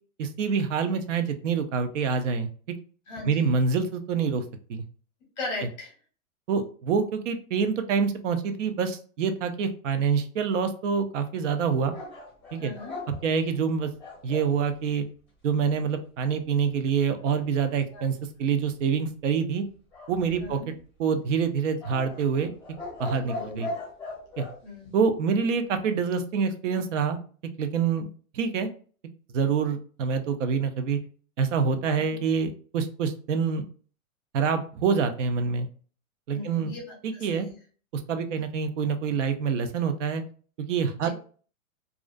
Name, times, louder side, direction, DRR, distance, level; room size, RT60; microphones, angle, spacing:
voice 1, 0.2-2.8 3.3-4.4 4.7-4.8 6.5-11.9 12.5-12.7 13.2-13.9 14.2-15.1 15.4-19.6 20.1-20.6 21.0-22.5 23.0-23.7 24.4-24.5 24.9-27.2 27.6-28.1 28.3-28.7 29.3-31.0 31.4-33.7 34.3-35.7 36.3-36.7 37.0-37.5 38.1-40.2 40.6-41.1, right 6 dB, 60° right, 9 dB, 0.5 m, -26 dB
voice 2, 3.1-3.5 5.4-5.9 12.6-12.9 17.9-18.0 20.4-20.7 23.2-23.6 24.6-25.0 31.9-32.2 36.3-37.5 41.0-41.1, left 2 dB, 30° left, -1 dB, 0.7 m, -38 dB
sound 1, 11.9-14.5 19.9-20.8 21.8-24.6, left 2 dB, 5° right, 0.5 m, -38 dB
2.4 x 2.1 x 2.4 m, 0.42 s
supercardioid pair, 170°, 43 cm